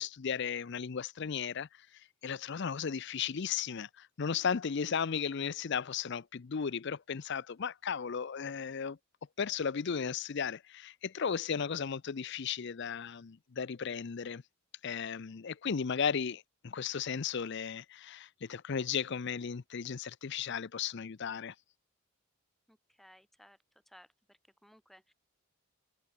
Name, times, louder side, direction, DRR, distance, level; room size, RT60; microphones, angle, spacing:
voice 1, 0.0-1.7 2.2-9.0 9.4-14.4 14.8-21.5, left 6 dB, 55° left, 0.5 m, -35 dB
voice 2, 22.7-23.6 23.9-25.1, equal, ahead, 2.4 m, -60 dB
head